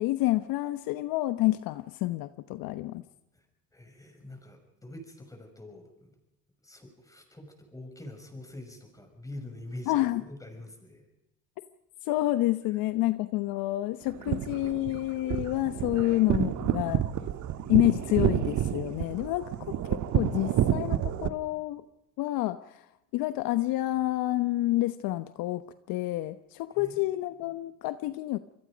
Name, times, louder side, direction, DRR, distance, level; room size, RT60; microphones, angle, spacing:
voice 1, 0.0-3.0 9.9-10.2 12.0-17.0 17.7-21.8 22.2-22.9 23.1-28.4, left 17 dB, 60° left, 12 dB, 1.0 m, -28 dB
voice 2, 3.7-6.1 6.6-11.1 26.8-26.9 27.4-27.5, left 1 dB, 10° left, 5 dB, 6.3 m, -45 dB
sound 1, 14.1-21.3, right 11 dB, 45° right, 1.5 m, -29 dB
27.5 x 21.5 x 5.2 m, 0.91 s
supercardioid pair, 100°, 40 cm